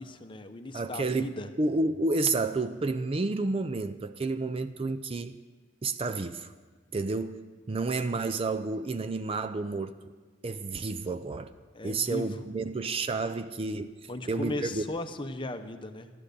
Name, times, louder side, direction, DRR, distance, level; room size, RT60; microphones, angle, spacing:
voice 1, 0.0-1.5 11.7-12.5 14.1-16.1, left 2 dB, 25° left, 0.8 m, -37 dB
voice 2, 0.7-1.3 1.6-5.4 5.8-6.5 6.9-10.0 10.4-11.5 11.8-14.8, right 3 dB, 30° right, 0.4 m, -30 dB
13.0 x 11.5 x 6.7 m
head